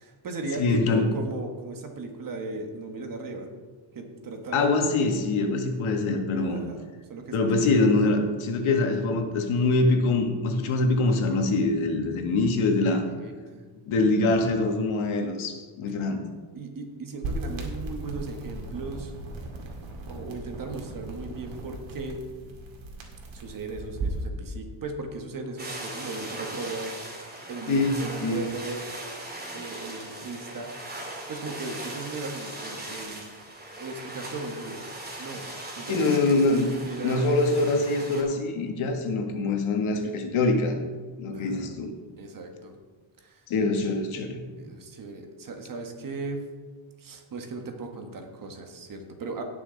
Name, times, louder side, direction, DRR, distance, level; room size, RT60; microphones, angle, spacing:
voice 1, 0.0-3.5 3.9-4.7 6.5-7.5 13.2-13.7 16.5-19.1 20.1-22.2 23.3-27.0 27.5-28.8 29.5-30.7 31.1-33.3 33.8-34.8 35.2-35.4 35.8-37.8 41.3-41.7 42.2-42.8 43.2-43.4 44.6-46.4 47.0-49.4, right 3 dB, 40° right, 4 dB, 1.6 m, -37 dB
voice 2, 0.6-1.1 4.5-6.6 7.3-13.1 13.9-16.2 27.7-28.4 35.9-36.7 37.0-40.7 41.2-41.9 43.5-44.4, left 3 dB, 75° left, 4 dB, 1.7 m, -24 dB
sound 1, 17.2-24.3, right 2 dB, 70° right, 2.3 m, -37 dB
sound 2, 25.6-38.2, right 1 dB, 20° right, 2.7 m, -39 dB
17.5 x 6.2 x 4.0 m, 1.4 s
cardioid pair, 140°, 49 cm